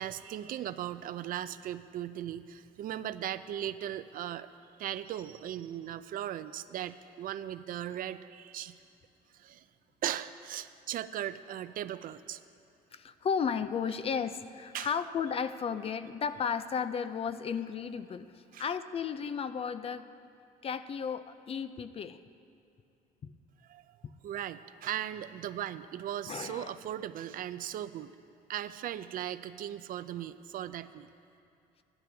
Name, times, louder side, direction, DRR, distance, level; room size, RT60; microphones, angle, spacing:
voice 1, 0.0-4.5 4.8-8.8 9.4-9.6 10.0-12.4 14.7-14.9 18.5-18.6 23.7-23.8 24.2-28.1 28.5-31.1, right 11 dB, 55° right, 13 dB, 0.4 m, -38 dB
voice 2, 12.9-20.1 20.6-22.2 23.2-23.3 26.3-26.8, left 6 dB, 35° left, 12 dB, 0.4 m, -34 dB
14.5 x 11.0 x 3.4 m, 2.6 s
cardioid pair, 110°, 17 cm